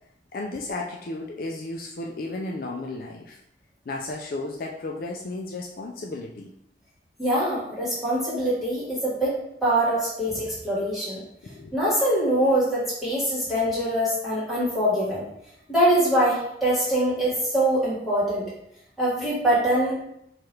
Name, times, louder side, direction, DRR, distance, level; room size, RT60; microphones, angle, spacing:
voice 1, 0.3-3.4 3.9-6.5 11.4-11.7, left 2 dB, 50° left, 0 dB, 0.3 m, -34 dB
voice 2, 7.2-11.2 11.7-15.2 15.7-18.4 19.0-20.0, right 1 dB, ahead, -9 dB, 1.5 m, -23 dB
4.6 x 2.4 x 3.2 m, 0.78 s
head